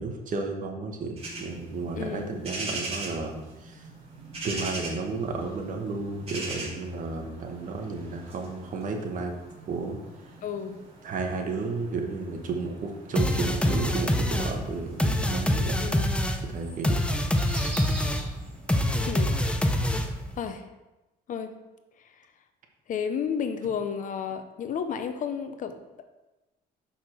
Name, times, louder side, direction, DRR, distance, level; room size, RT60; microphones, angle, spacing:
voice 1, 0.0-3.9 4.4-9.3 9.7-10.0 11.0-15.7 16.5-17.0, right 3 dB, 50° right, 3 dB, 1.3 m, -33 dB
sound 1, 1.2-20.5, right 2 dB, 35° right, 2.6 m, -42 dB
voice 2, 1.9-2.3 10.4-10.8 15.8-16.1 19.1-19.4 20.3-20.7 21.3-21.5 22.0-22.1 22.9-26.0, left 7 dB, 50° left, 9 dB, 0.7 m, -32 dB
sound 2, 13.2-20.4, left 1 dB, 5° left, 0.6 m, -26 dB
6.5 x 5.5 x 4.4 m, 1.0 s
cardioid pair, 110°, 17 cm